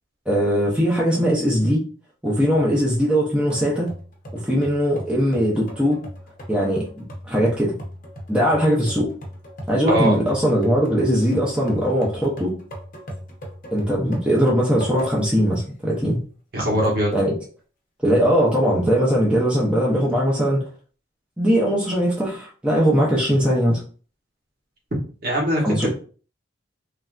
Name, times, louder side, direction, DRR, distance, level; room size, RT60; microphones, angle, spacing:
voice 1, 0.3-1.8 2.2-3.9 4.3-6.0 6.5-7.7 8.3-9.1 9.7-12.5 13.7-16.2 17.1-17.3 18.0-20.7 21.4-23.8 25.6-25.9, equal, 5° right, -5 dB, 0.6 m, -20 dB
sound 1, 3.5-15.4 15.9-16.0 16.7-17.3, equal, 45° left, 0.7 m, -38 dB
voice 2, 16.5-17.2 25.2-25.9, equal, 50° right, -1 dB, 1.0 m, -21 dB
3.2 x 2.6 x 2.3 m, 0.39 s
head